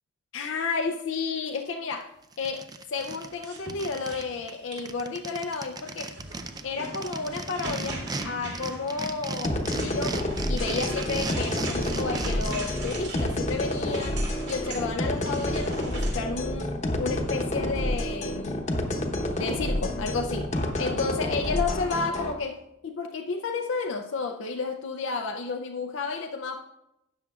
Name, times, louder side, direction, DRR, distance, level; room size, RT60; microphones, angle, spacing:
voice 1, 0.3-6.2 6.6-18.7 19.4-26.6, left 4 dB, 70° left, 3 dB, 0.5 m, -32 dB
sound 1, 1.9-2.0 2.3-4.2 4.5-4.6 4.8-8.3 8.5-12.8, right 3 dB, 20° right, 0.4 m, -35 dB
sound 2, 3.3-5.0 5.8-16.2, right 2 dB, 55° right, 2.3 m, -41 dB
sound 3, 9.4-22.3, left 1 dB, 35° left, 0.9 m, -29 dB
12.5 x 8.5 x 2.4 m, 0.86 s
head